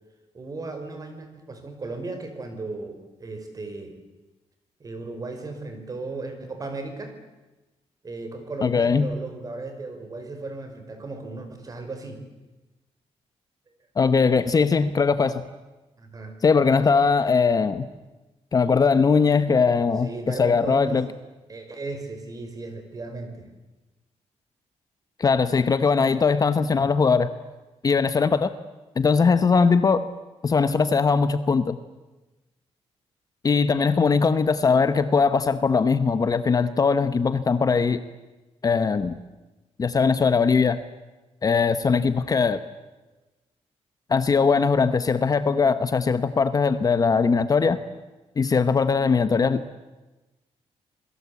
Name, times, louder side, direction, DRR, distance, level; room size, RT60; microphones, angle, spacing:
voice 1, 0.3-4.0 4.8-7.2 8.0-12.2 16.0-16.4 20.0-21.0 21.5-23.5, right 3 dB, 30° right, 7 dB, 5.0 m, -36 dB
voice 2, 8.6-9.1 14.0-15.4 16.4-17.8 18.5-21.1 25.2-27.3 27.8-28.5 29.0-30.0 30.4-31.8 33.4-38.0 38.6-39.1 39.8-40.8 41.4-42.6 44.1-47.8 48.4-49.6, left 5 dB, 30° left, 12 dB, 1.0 m, -20 dB
28.0 x 21.5 x 8.4 m, 1.1 s
cardioid pair, 140°, 12 cm